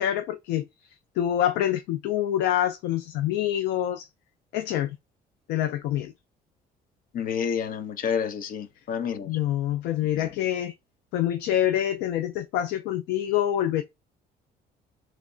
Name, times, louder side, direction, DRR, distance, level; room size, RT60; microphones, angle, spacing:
voice 1, 0.0-4.1 4.5-5.0 5.5-6.1 9.3-10.7 11.1-13.8, left 11 dB, 90° left, 0.5 m, -26 dB
voice 2, 7.1-9.3 10.2-10.3, left 7 dB, 55° left, 0.7 m, -29 dB
3.3 x 2.1 x 3.7 m
cardioid pair, 110°, 17 cm